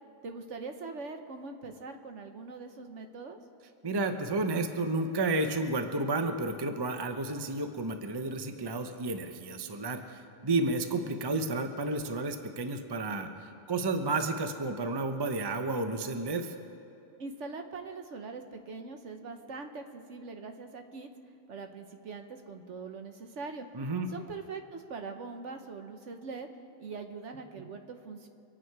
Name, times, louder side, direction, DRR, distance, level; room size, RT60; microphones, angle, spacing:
voice 1, 0.2-3.4 17.2-21.1 21.5-23.7 24.1-26.5 26.8-28.3, right 4 dB, 60° right, 6 dB, 1.2 m, -42 dB
voice 2, 3.8-16.5 23.7-24.1 27.6-27.7, right 2 dB, 25° right, 6 dB, 0.6 m, -31 dB
24.5 x 9.3 x 4.7 m, 2.8 s
omnidirectional pair, 1.5 m